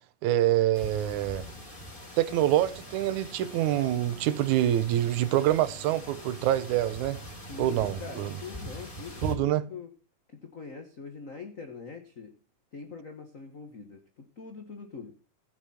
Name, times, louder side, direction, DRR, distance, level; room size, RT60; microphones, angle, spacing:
voice 1, 0.2-1.5 2.2-7.2 7.6-8.3 9.2-9.6, right 13 dB, 75° right, 2.2 m, -26 dB
sound 1, 0.7-9.3, right 1 dB, 15° left, 3.8 m, -42 dB
voice 2, 7.5-9.9 10.4-12.3 12.7-15.1, left 5 dB, 50° left, 0.9 m, -43 dB
15.5 x 9.1 x 4.3 m
omnidirectional pair, 3.7 m